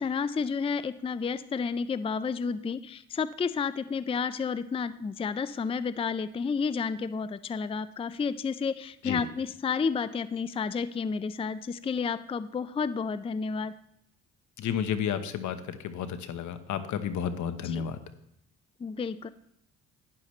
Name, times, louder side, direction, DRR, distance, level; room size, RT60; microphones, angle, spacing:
voice 1, 0.0-13.7 17.6-17.9 18.8-19.3, left 5 dB, 20° left, 14 dB, 0.4 m, -31 dB
voice 2, 14.6-18.0, left 8 dB, 75° left, 10 dB, 1.1 m, -32 dB
11.5 x 10.0 x 3.2 m, 0.78 s
cardioid pair, 90°, 30 cm